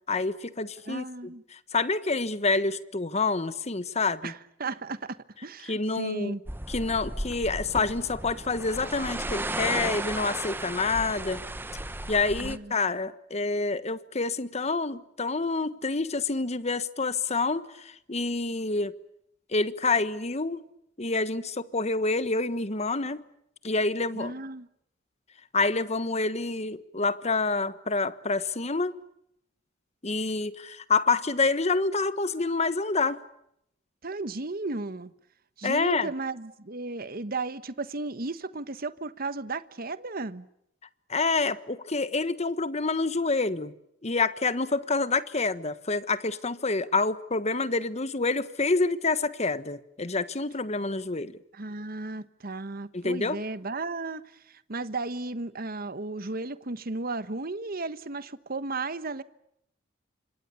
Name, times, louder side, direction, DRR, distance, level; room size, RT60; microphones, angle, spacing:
voice 1, 0.1-1.0 1.5-4.3 5.6-6.3 6.7-11.4 12.1-18.9 19.5-20.6 21.0-23.2 23.6-24.3 25.5-28.9 30.0-33.2 35.6-36.1 41.1-43.7 44.0-51.4 52.9-53.4, left 3 dB, 35° left, 1.3 m, -27 dB
voice 2, 0.9-1.4 4.2-6.4 12.4-12.7 24.1-24.7 34.0-35.1 35.6-40.5 51.5-59.2, right 3 dB, 50° right, 1.2 m, -34 dB
sound 1, 6.5-12.6, right 1 dB, 10° right, 1.1 m, -34 dB
29.0 x 26.5 x 7.0 m
head